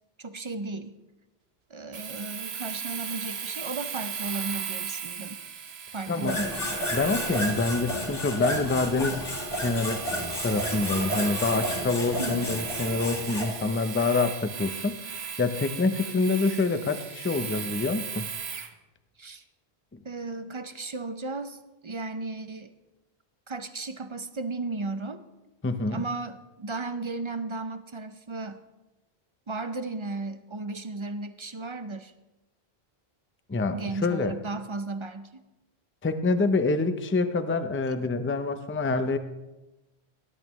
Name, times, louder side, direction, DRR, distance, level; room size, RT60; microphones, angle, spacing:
voice 1, 0.2-1.0 1.7-5.4 5.9-6.8 12.2-12.4 19.2-19.4 20.0-22.7 23.5-25.2 25.9-28.6 29.5-32.1 33.7-35.4, right 3 dB, 40° right, 10 dB, 0.5 m, -35 dB
Domestic sounds home sounds, 1.9-18.7, right 7 dB, 75° right, 1.1 m, -37 dB
voice 2, 6.1-6.5 6.9-9.3 9.6-10.1 10.4-18.3 25.6-26.0 33.5-34.3 36.0-39.2, left 3 dB, 15° left, 9 dB, 0.5 m, -26 dB
sound 1, 6.2-13.5, left 1 dB, 60° left, 2.7 m, -32 dB
19.0 x 11.0 x 3.1 m, 1.0 s
omnidirectional pair, 1.1 m